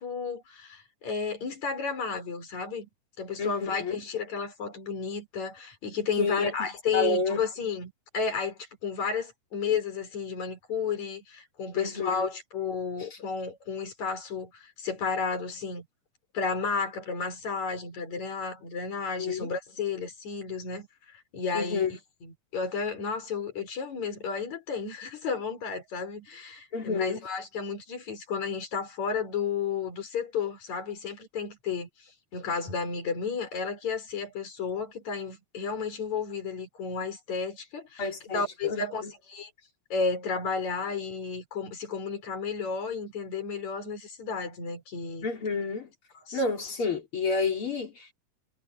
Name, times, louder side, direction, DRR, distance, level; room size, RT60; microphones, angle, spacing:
voice 1, 0.0-2.9 3.2-15.8 16.3-39.5 39.9-45.3 46.3-46.4, left 5 dB, 60° left, 6.5 m, -32 dB
voice 2, 3.4-4.0 6.2-6.5 6.9-7.4 11.7-12.3 19.2-19.5 21.5-21.9 26.7-27.2 38.0-39.1 45.2-45.9 46.3-48.1, left 4 dB, 40° left, 4.5 m, -29 dB
omnidirectional pair, 3.6 m